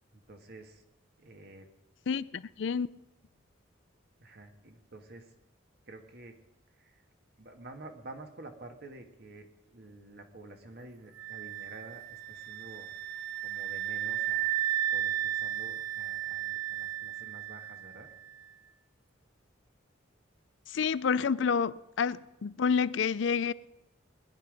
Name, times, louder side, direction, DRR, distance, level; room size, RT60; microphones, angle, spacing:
voice 1, 0.1-0.8 1.2-1.7 4.2-5.3 5.9-6.4 6.8-7.0 7.4-12.9 13.4-14.5 14.9-18.1, right 2 dB, 55° right, 5 dB, 1.7 m, -49 dB
voice 2, 2.1-2.9 20.7-23.5, left 6 dB, 65° left, 17 dB, 0.4 m, -29 dB
sound 1, 11.2-18.0, right 12 dB, 75° right, 0.8 m, -34 dB
20.5 x 11.0 x 5.1 m, 0.89 s
head